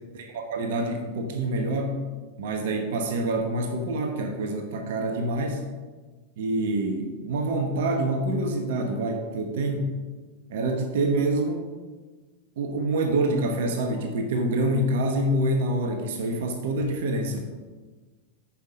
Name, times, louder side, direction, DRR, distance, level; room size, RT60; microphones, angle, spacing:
voice 1, 0.1-2.0 2.4-5.6 6.4-9.9 10.5-11.7 12.6-17.4, right 2 dB, 55° right, 4 dB, 1.1 m, -26 dB
9.4 x 5.9 x 5.0 m, 1.3 s
figure-of-eight pair, 90°, 0 cm